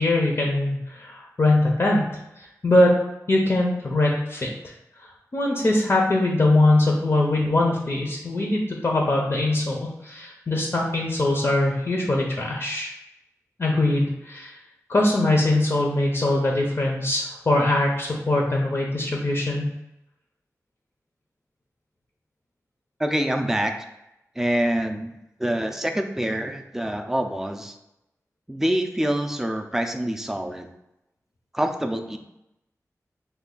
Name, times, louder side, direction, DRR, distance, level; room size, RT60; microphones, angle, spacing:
voice 1, 0.0-2.0 2.4-3.0 3.3-4.5 5.3-12.9 13.6-14.6 14.9-19.7, left 2 dB, 45° left, -1 dB, 0.6 m, -22 dB
voice 2, 23.0-23.7 24.4-25.1 25.4-27.7 28.5-30.7 31.5-32.2, right 1 dB, 5° right, 5 dB, 0.4 m, -25 dB
3.2 x 2.2 x 3.7 m, 0.87 s
wide cardioid pair, 60°, 6 cm